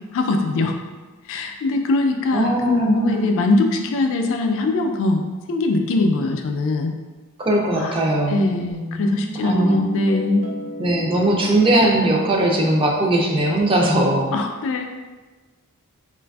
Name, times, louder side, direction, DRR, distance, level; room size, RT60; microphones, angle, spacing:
voice 1, 0.1-0.8 1.3-5.2 5.5-6.9 7.7-8.0 8.3-10.4 14.3-14.8, left 2 dB, 60° left, 4 dB, 0.3 m, -21 dB
voice 2, 2.3-3.3 7.4-8.4 9.4-9.8 10.8-14.3, right 1 dB, 25° right, 0 dB, 0.4 m, -19 dB
Guitar, 8.7-13.8, equal, 90° right, 0.5 m, -34 dB
3.9 x 2.5 x 2.2 m, 1.3 s
head